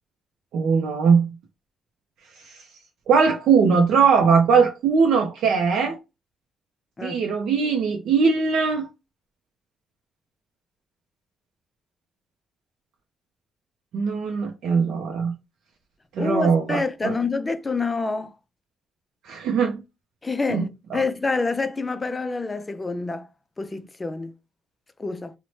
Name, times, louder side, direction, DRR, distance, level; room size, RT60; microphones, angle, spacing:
voice 1, 0.5-1.3 2.4-2.6 3.1-6.0 7.0-8.9 13.9-15.3 16.2-17.1 19.2-19.8 20.5-20.6 20.9-21.0, right 5 dB, 75° right, 0.4 m, -20 dB
voice 2, 16.2-18.3 20.2-23.3 23.6-24.3 25.0-25.3, left 3 dB, 25° left, 0.3 m, -27 dB
2.8 x 2.0 x 3.0 m
cardioid pair, 90°, 0 cm